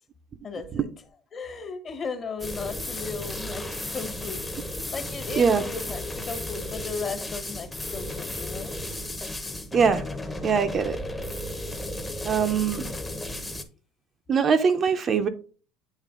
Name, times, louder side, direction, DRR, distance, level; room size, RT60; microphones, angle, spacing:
voice 1, 0.4-0.9 1.3-4.5 4.9-8.7, left 5 dB, 30° left, 0.9 m, -36 dB
sound 1, 2.4-13.6, left 1 dB, 10° left, 0.7 m, -34 dB
voice 2, 9.7-10.0 10.4-11.0 12.2-12.9 14.3-15.3, right 6 dB, 30° right, 0.5 m, -22 dB
8.3 x 3.1 x 3.6 m
cardioid pair, 135°, 0 cm